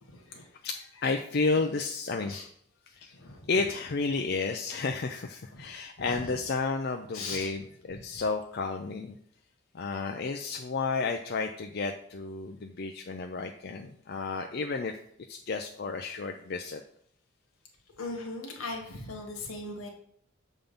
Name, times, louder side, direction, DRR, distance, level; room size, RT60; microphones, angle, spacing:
voice 1, 0.0-0.5 2.2-2.5 3.1-3.5 5.5-6.4 7.1-7.5 8.1-8.2 18.0-19.9, left 2 dB, 85° left, 2 dB, 1.5 m, -39 dB
voice 2, 1.0-2.3 2.9-3.1 3.5-9.2 9.7-15.0 15.3-16.8, left 4 dB, 50° left, 4 dB, 0.4 m, -32 dB
7.0 x 3.7 x 5.2 m, 0.64 s
head